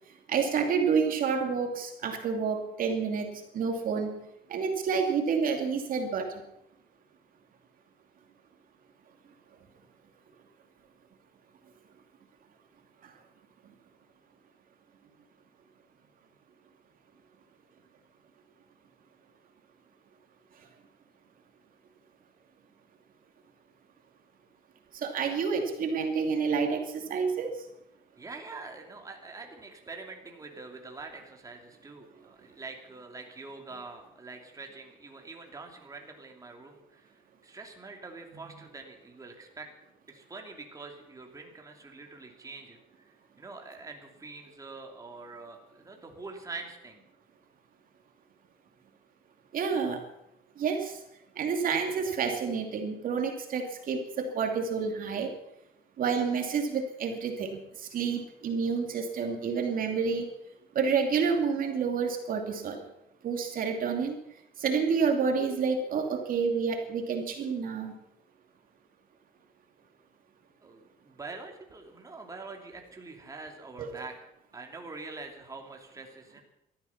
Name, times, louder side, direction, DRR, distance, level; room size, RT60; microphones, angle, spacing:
voice 1, 0.3-4.2 4.5-6.3 24.9-27.5 49.5-50.0 50.6-51.0 51.4-55.3 56.0-60.2 60.7-62.8 63.2-64.2 64.6-67.9 73.8-73.9, right 5 dB, 55° right, 4 dB, 2.7 m, -29 dB
voice 2, 28.2-39.7 40.1-47.0 70.6-74.2 74.5-76.4, right 3 dB, 20° right, 2 dB, 2.8 m, -45 dB
18.5 x 13.5 x 5.9 m, 0.85 s
cardioid pair, 110°, 17 cm